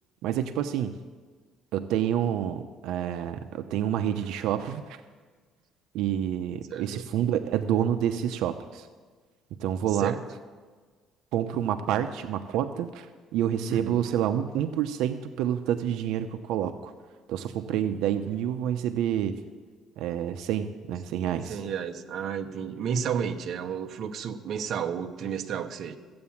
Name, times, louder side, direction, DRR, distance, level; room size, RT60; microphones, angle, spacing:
voice 1, 0.2-0.9 1.7-5.0 5.9-8.9 9.6-10.1 11.3-13.1 13.3-16.9 17.3-19.3 20.0-21.6, right 10 dB, 75° right, 8 dB, 0.7 m, -28 dB
voice 2, 6.7-7.1 10.0-10.2 13.7-14.0 21.5-26.0, right 7 dB, 45° right, 5 dB, 0.9 m, -32 dB
15.0 x 8.6 x 7.2 m, 1.4 s
cardioid pair, 170°, 0 cm